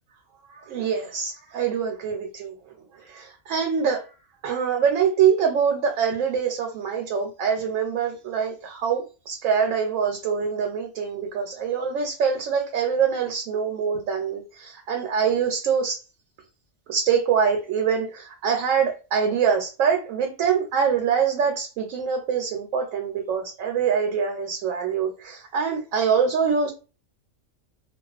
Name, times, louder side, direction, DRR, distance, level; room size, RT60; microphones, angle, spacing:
voice 1, 0.5-2.5 2.9-4.0 4.4-16.0 16.9-26.7, right 7 dB, 85° right, 1.0 m, -24 dB
2.3 x 2.2 x 2.4 m
omnidirectional pair, 1.3 m